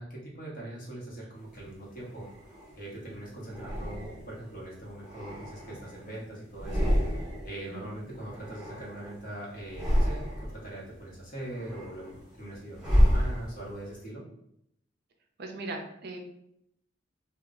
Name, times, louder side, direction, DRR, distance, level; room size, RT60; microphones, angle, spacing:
voice 1, 0.0-2.3 2.7-14.2, right 1 dB, 45° left, -4 dB, 1.0 m, -41 dB
sound 1, 1.6-2.8 3.5-4.4 4.9-6.1 6.5-7.6 7.8-9.2 9.6-10.7 11.1-13.9, equal, 5° right, 0.8 m, -29 dB
voice 2, 15.4-16.2, right 2 dB, 55° right, 3 dB, 0.4 m, -38 dB
2.3 x 2.0 x 3.6 m, 0.76 s
head